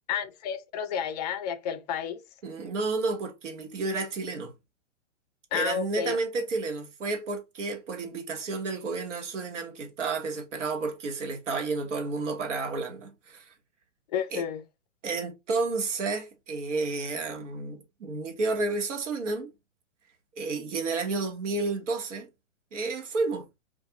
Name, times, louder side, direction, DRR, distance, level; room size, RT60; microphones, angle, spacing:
voice 1, 0.1-2.2 5.5-6.2 14.1-14.6, left 8 dB, 35° left, 0.4 m, -31 dB
voice 2, 2.4-4.5 5.5-13.5 14.3-14.4 15.0-19.5 20.3-22.3 22.7-23.5, right 3 dB, 70° right, 1.0 m, -31 dB
2.4 x 2.3 x 2.8 m
hypercardioid pair, 125°, 37 cm